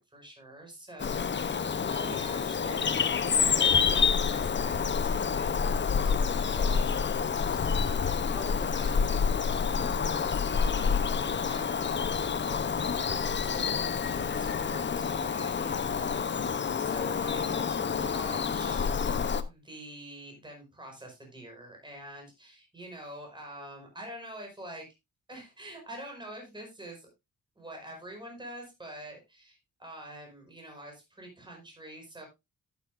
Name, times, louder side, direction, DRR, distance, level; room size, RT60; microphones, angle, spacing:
voice 1, 0.1-18.9 19.4-24.8 25.3-27.1 27.5-32.3, right 1 dB, 15° right, 1 dB, 5.0 m, -46 dB
Bird vocalization bird call bird song, 1.0-19.4, left 6 dB, 35° left, 0.8 m, -28 dB
11.0 x 9.7 x 2.5 m, 0.22 s
wide cardioid pair, 125°, 31 cm